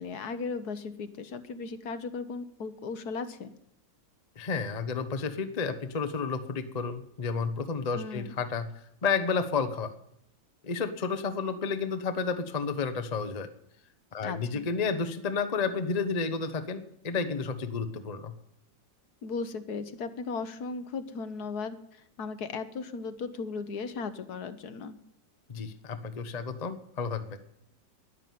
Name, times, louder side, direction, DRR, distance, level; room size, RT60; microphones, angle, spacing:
voice 1, 0.0-3.5 7.9-8.3 14.2-14.6 19.2-25.0, left 4 dB, 60° left, 12 dB, 1.4 m, -36 dB
voice 2, 4.4-8.7 9.0-9.9 10.6-13.5 14.1-18.3 25.5-27.4, left 5 dB, 35° left, 10 dB, 0.7 m, -31 dB
11.0 x 11.0 x 9.3 m, 0.77 s
omnidirectional pair, 2.0 m